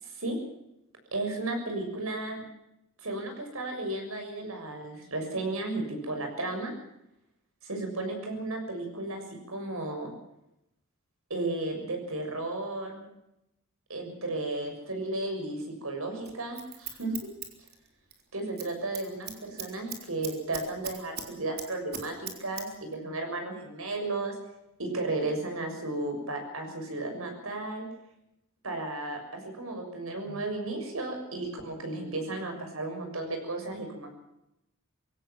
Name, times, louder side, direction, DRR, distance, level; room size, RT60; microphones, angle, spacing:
voice 1, 0.0-0.4 1.1-2.4 3.0-6.7 7.6-10.1 11.3-13.0 13.9-17.3 18.3-24.4 24.8-27.9 28.6-34.1, right 2 dB, 80° right, 4 dB, 6.8 m, -34 dB
Scissors, 16.2-18.2 18.5-18.7 19.0-21.3 21.6-22.7 22.9-23.0, right 8 dB, 50° right, 3.7 m, -39 dB
23.0 x 17.0 x 7.5 m, 0.86 s
head